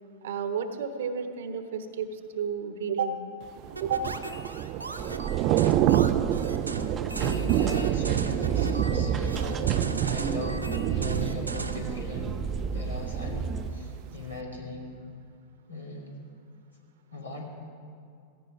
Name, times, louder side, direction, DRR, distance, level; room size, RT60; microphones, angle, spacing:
voice 1, 0.2-3.2 3.8-4.1, right 6 dB, 60° right, 8 dB, 1.2 m, -31 dB
Thunder / Rain, 3.6-13.5 13.9-14.1, right 12 dB, 40° right, 0.4 m, -28 dB
sound 1, 3.8-11.9, right 2 dB, 80° right, 0.8 m, -38 dB
sound 2, 5.0-13.7, right 6 dB, 25° right, 0.8 m, -33 dB
voice 2, 7.2-12.4 12.7-14.9 15.7-16.1 17.1-17.5, left 2 dB, 85° left, -3 dB, 3.0 m, -38 dB
16.5 x 15.5 x 4.9 m, 2.4 s
figure-of-eight pair, 90°, 0 cm